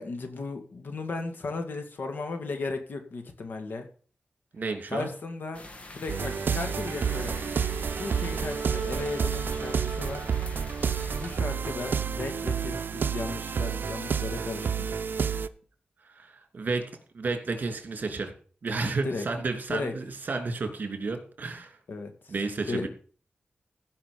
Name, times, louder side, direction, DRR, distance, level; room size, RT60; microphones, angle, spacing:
voice 1, 0.0-3.9 4.9-5.6 5.9-7.6 7.9-10.3 11.2-14.9 19.0-19.3 19.7-19.9 21.9-22.3 22.7-22.9, left 3 dB, 75° left, 5 dB, 2.3 m, -35 dB
voice 2, 4.5-5.1 16.0-16.8 17.1-18.3 18.6-21.8 22.3-22.9, right 3 dB, 55° right, 5 dB, 2.9 m, -31 dB
sound 1, 5.5-11.4, left 2 dB, 35° left, 1.8 m, -45 dB
sound 2, 6.1-15.5, right 6 dB, 80° right, 0.7 m, -30 dB
15.5 x 5.8 x 6.9 m, 0.43 s
wide cardioid pair, 120°, 3 cm